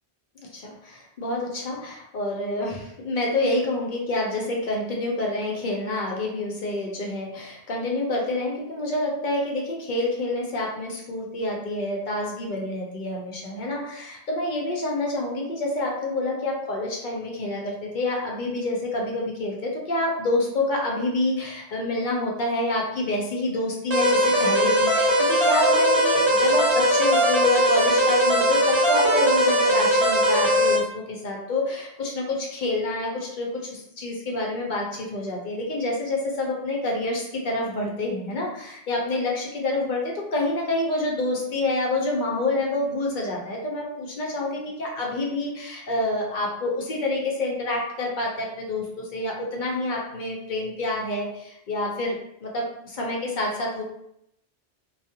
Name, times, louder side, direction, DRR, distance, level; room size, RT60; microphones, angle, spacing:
voice 1, 0.5-52.6 53.0-53.8, left 2 dB, 55° left, -2 dB, 0.6 m, -27 dB
sound 1, 23.9-30.8, equal, 45° right, 0.5 m, -20 dB
2.3 x 2.0 x 2.6 m, 0.78 s
omnidirectional pair, 1.2 m